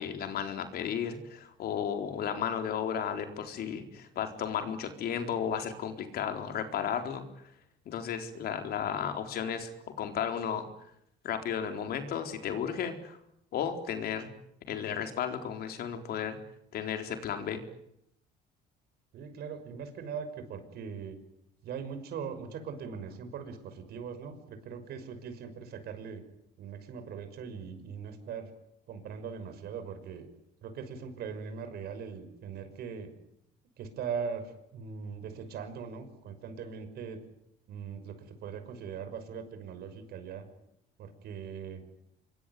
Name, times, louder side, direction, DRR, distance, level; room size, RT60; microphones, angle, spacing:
voice 1, 0.0-7.2 7.9-9.7 10.0-10.7 11.2-13.2 13.5-14.3 14.7-16.4 16.7-17.6, left 8 dB, 65° left, 6 dB, 4.3 m, -34 dB
voice 2, 19.1-21.2 21.6-26.2 26.6-28.5 28.9-30.3 30.6-33.1 33.8-37.2 37.7-40.4 41.0-41.8, right 6 dB, 70° right, 9 dB, 6.1 m, -40 dB
26.0 x 23.0 x 9.6 m, 0.76 s
cardioid pair, 110°, 17 cm